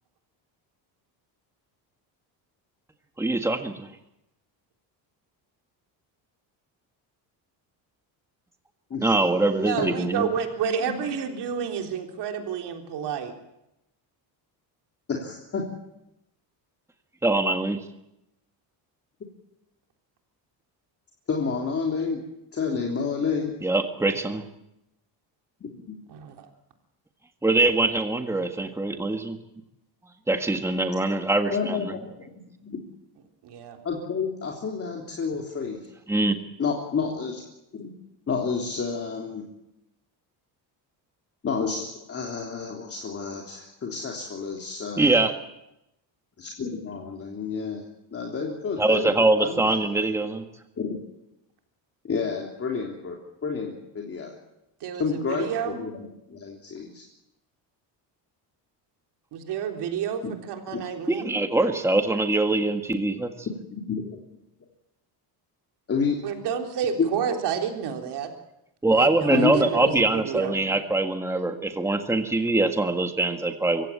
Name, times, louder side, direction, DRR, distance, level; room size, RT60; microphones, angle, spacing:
voice 1, 3.2-4.0 9.0-10.3 17.2-17.8 23.6-24.4 27.4-29.4 30.3-31.9 36.1-36.4 45.0-45.3 48.8-50.4 61.1-63.3 68.8-73.9, right 2 dB, 5° right, 6 dB, 1.7 m, -23 dB
voice 2, 9.6-13.3 26.1-26.5 33.4-33.8 54.8-55.8 59.3-61.4 66.2-68.3 68.9-70.6, right 7 dB, 65° right, 4 dB, 3.7 m, -30 dB
voice 3, 15.1-15.6 21.3-22.2 22.5-23.5 25.6-25.9 31.5-32.3 32.6-32.8 33.8-35.8 36.6-37.4 37.8-37.9 38.3-39.4 41.4-45.1 46.4-47.8 48.1-50.0 50.8-51.0 52.0-53.2 53.4-54.4 55.0-57.1 60.2-60.3 60.7-60.8 63.7-64.2 65.9-66.2 67.0-67.1 69.3-69.6, left 5 dB, 35° left, 0 dB, 3.5 m, -29 dB
24.5 x 16.5 x 8.8 m, 0.88 s
cardioid pair, 135°, 43 cm